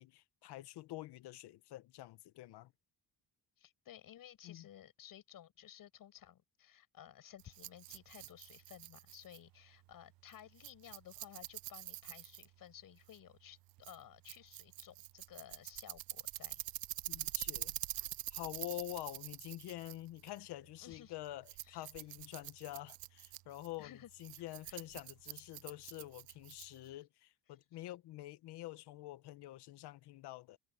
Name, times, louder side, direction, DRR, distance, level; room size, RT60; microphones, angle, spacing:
voice 1, 0.0-2.7 4.4-4.7 17.1-17.7 18.3-30.6, left 16 dB, 75° left, 1.0 m, -47 dB
voice 2, 3.6-16.7 20.8-21.2 21.6-21.9 23.8-24.1 24.6-24.8 26.8-26.9, left 11 dB, 55° left, 6.9 m, -56 dB
Rattle, 7.4-27.0, right 16 dB, 60° right, 0.6 m, -46 dB
cardioid pair, 165°, 40 cm